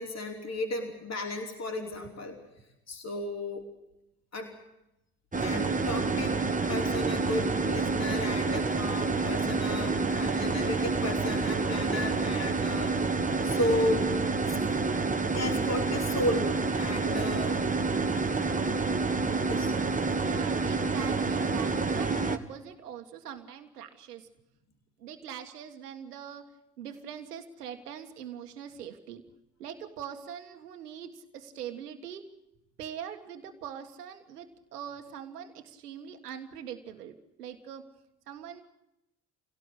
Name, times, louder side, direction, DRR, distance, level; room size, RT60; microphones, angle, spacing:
voice 1, 0.0-2.4 2.9-3.6 4.3-4.6 5.4-6.4 6.7-14.1 14.4-14.6 15.3-17.6 19.4-19.7, left 1 dB, 35° left, 2 dB, 5.1 m, -34 dB
sound 1, 5.3-22.4, right 4 dB, 15° right, 2.3 m, -28 dB
voice 2, 20.2-24.3 25.0-26.5 26.8-29.2 29.6-32.3 32.8-37.9 38.3-38.6, right 8 dB, 85° right, 5 dB, 1.8 m, -42 dB
26.5 x 17.5 x 8.3 m, 0.88 s
hypercardioid pair, 55°, 45 cm